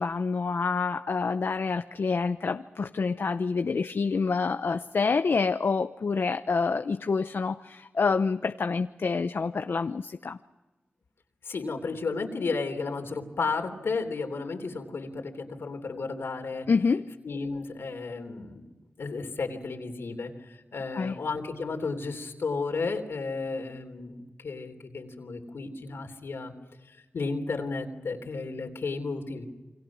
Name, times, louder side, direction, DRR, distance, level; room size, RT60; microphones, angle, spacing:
voice 1, 0.0-10.4 16.7-17.1 20.9-21.1, left 4 dB, 65° left, 9 dB, 0.7 m, -27 dB
voice 2, 11.4-16.7 17.2-18.6 19.0-26.5 26.8-29.5, left 4 dB, 80° left, 5 dB, 3.4 m, -33 dB
29.0 x 24.0 x 6.2 m, 1.2 s
cardioid pair, 50°, 4 cm